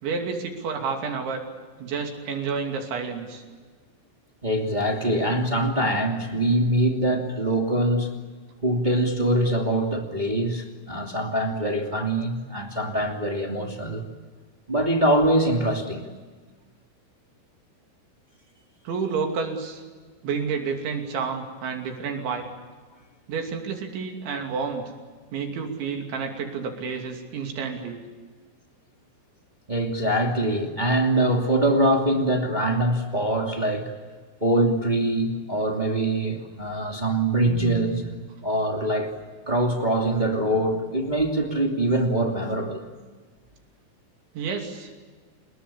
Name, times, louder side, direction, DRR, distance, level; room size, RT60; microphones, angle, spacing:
voice 1, 0.0-1.4 1.8-3.4 18.8-19.8 20.2-22.5 23.3-24.8 25.3-28.0 44.3-44.9, right 5 dB, 65° right, 3 dB, 5.0 m, -30 dB
voice 2, 4.4-8.1 8.6-14.1 14.7-16.0 29.7-33.9 34.4-38.2 38.4-39.1 39.4-42.8, right 1 dB, 20° right, 2 dB, 1.2 m, -23 dB
29.0 x 21.0 x 8.5 m, 1.4 s
omnidirectional pair, 5.8 m